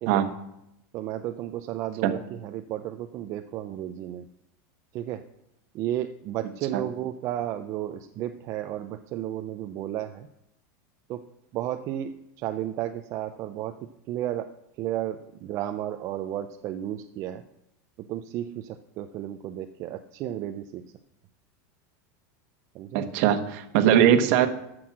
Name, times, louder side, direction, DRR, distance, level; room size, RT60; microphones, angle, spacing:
voice 1, 0.9-4.3 4.9-5.2 5.7-10.3 11.1-11.2 11.5-12.1 12.4-13.7 14.1-14.5 14.8-17.4 18.1-20.8 22.7-23.1, right 12 dB, 35° right, 7 dB, 0.5 m, -33 dB
voice 2, 22.9-24.5, right 10 dB, 50° right, 9 dB, 1.2 m, -20 dB
13.5 x 6.2 x 6.0 m, 0.83 s
supercardioid pair, 165°, 9 cm